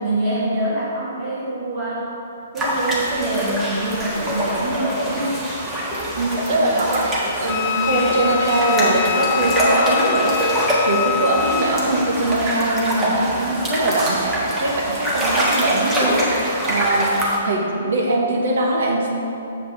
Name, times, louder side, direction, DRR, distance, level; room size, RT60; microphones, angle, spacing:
voice 1, 0.0-2.1 2.5-5.4 11.3-11.7 17.3-17.7, right 1 dB, 40° right, -10 dB, 1.7 m, -25 dB
sound 1, 2.6-17.4, right 1 dB, 10° right, 1.4 m, -24 dB
voice 2, 6.1-19.1, right 2 dB, 55° right, -2 dB, 1.2 m, -22 dB
Wind instrument woodwind instrument, 7.5-11.7, left 11 dB, 20° left, 0.4 m, -25 dB
7.4 x 4.9 x 5.9 m, 2.9 s
figure-of-eight pair, 125°, 0 cm